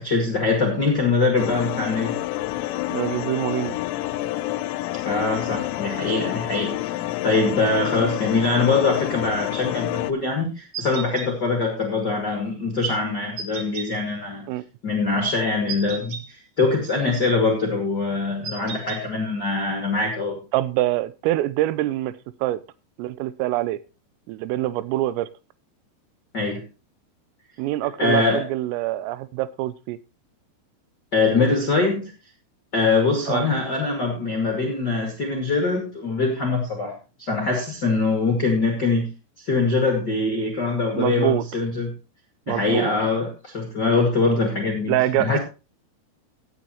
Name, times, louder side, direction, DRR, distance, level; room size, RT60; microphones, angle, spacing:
voice 1, 0.0-2.2 5.0-6.9 7.2-14.5 14.8-20.4 26.3-26.6 28.0-28.4 31.1-32.1 32.7-39.1 39.4-41.9 42.5-45.4, left 3 dB, 55° left, 2 dB, 1.1 m, -23 dB
sound 1, 1.4-10.1, left 16 dB, 85° left, 3.2 m, -28 dB
voice 2, 2.9-3.8 8.0-8.2 14.5-14.6 20.5-22.6 23.0-23.8 24.3-25.3 27.6-30.0 33.3-33.5 40.9-41.4 42.5-42.9 44.9-45.4, right 15 dB, 90° right, 16 dB, 3.3 m, -25 dB
sound 2, 10.7-11.3 13.4-13.9 15.7-16.2 18.4-19.0, right 6 dB, 65° right, 2.0 m, -33 dB
16.0 x 8.9 x 3.0 m, 0.31 s
omnidirectional pair, 5.8 m